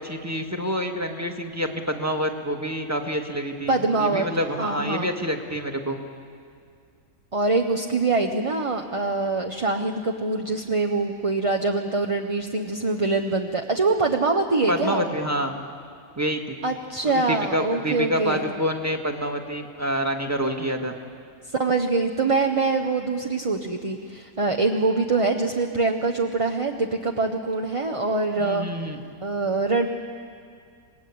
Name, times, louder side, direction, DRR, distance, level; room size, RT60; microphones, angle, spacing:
voice 1, 0.0-6.0 14.7-15.6 16.2-16.6 17.0-20.9 28.4-29.0, equal, 10° right, 3 dB, 1.8 m, -27 dB
voice 2, 3.7-4.3 4.6-5.1 7.3-15.1 16.6-18.4 21.5-28.7 29.2-29.9, right 3 dB, 25° right, 3 dB, 0.8 m, -24 dB
27.5 x 20.5 x 8.6 m, 2.2 s
omnidirectional pair, 1.6 m